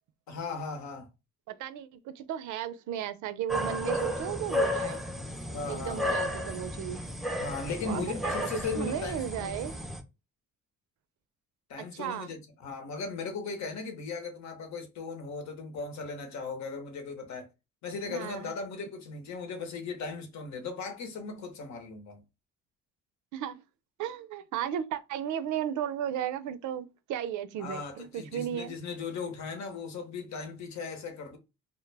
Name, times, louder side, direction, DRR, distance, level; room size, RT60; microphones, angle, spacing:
voice 1, 0.3-1.1 5.5-6.2 7.4-9.6 11.7-17.5 17.8-22.2 27.6-31.4, left 4 dB, 65° left, 0.9 m, -37 dB
voice 2, 1.5-5.0 5.7-7.0 7.8-8.3 8.7-9.7 11.9-12.3 18.1-18.5 23.3-23.6 24.0-28.7, right 10 dB, 75° right, 0.5 m, -35 dB
sound 1, 3.5-10.0, left 1 dB, ahead, 0.4 m, -33 dB
2.2 x 2.1 x 3.2 m
cardioid pair, 90°, 30 cm